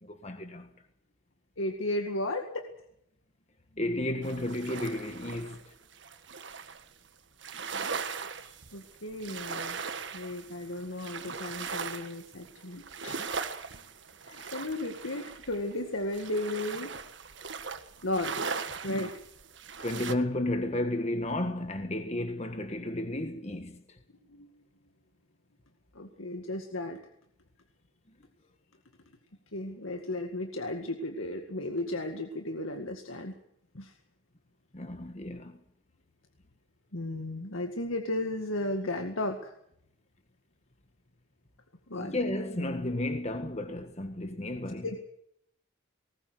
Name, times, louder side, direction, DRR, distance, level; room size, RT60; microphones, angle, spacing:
voice 1, 0.0-0.7 3.8-5.7 14.4-14.5 19.8-24.0 34.7-35.6 41.9-44.9, left 1 dB, 30° left, 1.5 m, -33 dB
voice 2, 1.6-2.7 8.7-9.8 10.1-13.2 14.2-16.9 18.0-18.5 18.8-19.2 24.3-24.6 25.9-27.0 29.5-33.3 33.7-33.9 36.9-39.5 41.9-42.1 44.8-45.0, left 1 dB, 85° left, 2.0 m, -34 dB
sound 1, 4.2-6.9 7.4-20.2, right 5 dB, 60° right, 1.7 m, -39 dB
20.0 x 18.5 x 8.2 m
head